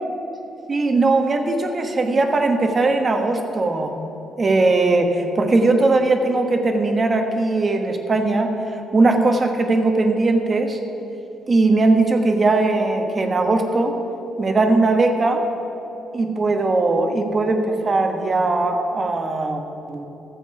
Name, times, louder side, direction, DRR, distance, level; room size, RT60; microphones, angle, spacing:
voice 1, 0.7-3.9 4.4-8.5 8.9-10.8 11.5-14.0 14.4-15.4 16.1-19.6 19.9-20.1, right 3 dB, 35° right, 4 dB, 1.2 m, -19 dB
14.0 x 7.8 x 4.8 m, 3.0 s
cardioid pair, 90°, 0 cm